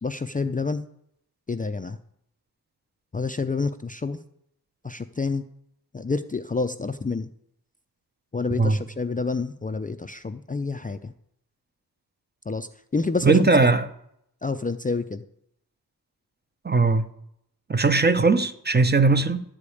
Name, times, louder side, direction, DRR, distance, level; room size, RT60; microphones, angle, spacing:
voice 1, 0.0-0.9 1.5-2.0 3.1-4.2 4.8-5.4 5.9-7.3 8.3-11.1 12.5-13.5 14.4-15.2, left 4 dB, 20° left, 0.4 m, -28 dB
voice 2, 13.2-13.9 16.6-17.1 17.7-19.4, right 3 dB, 25° right, 0.6 m, -19 dB
12.0 x 5.0 x 8.5 m
wide cardioid pair, 95°, 39 cm